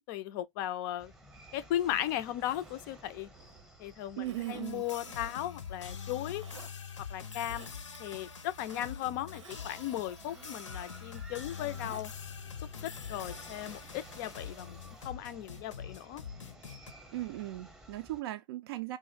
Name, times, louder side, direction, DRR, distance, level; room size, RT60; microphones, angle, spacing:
voice 1, 0.1-1.1 1.5-3.3 3.8-6.4 7.1-7.7 8.0-12.1 12.8-14.8 15.0-16.2, left 12 dB, 40° left, 0.4 m, -36 dB
sound 1, 1.0-18.2, right 1 dB, 5° right, 0.8 m, -56 dB
Zipper (clothing), 1.7-3.6 4.2-5.6 6.0-6.7 7.2-8.0 8.3-12.1 12.4-12.5, right 3 dB, 90° right, 0.8 m, -54 dB
voice 2, 4.2-4.8 17.1-19.0, right 15 dB, 55° right, 0.4 m, -38 dB
sound 2, 4.6-16.9, left 6 dB, 80° left, 0.6 m, -44 dB
2.5 x 2.0 x 3.9 m
hypercardioid pair, 110°, 15 cm